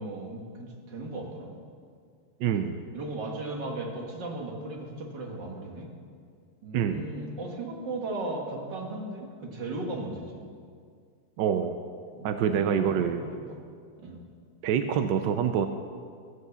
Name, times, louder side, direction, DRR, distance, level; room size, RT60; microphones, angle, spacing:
voice 1, 0.0-1.5 2.9-5.9 6.6-10.5 12.1-13.6 14.0-14.2, right 2 dB, 55° right, 0 dB, 2.3 m, -36 dB
voice 2, 2.4-2.8 6.7-7.0 11.4-11.8 12.2-13.2 14.6-15.7, right 8 dB, 70° right, 7 dB, 1.1 m, -26 dB
15.0 x 8.3 x 6.8 m, 2.2 s
omnidirectional pair, 2.4 m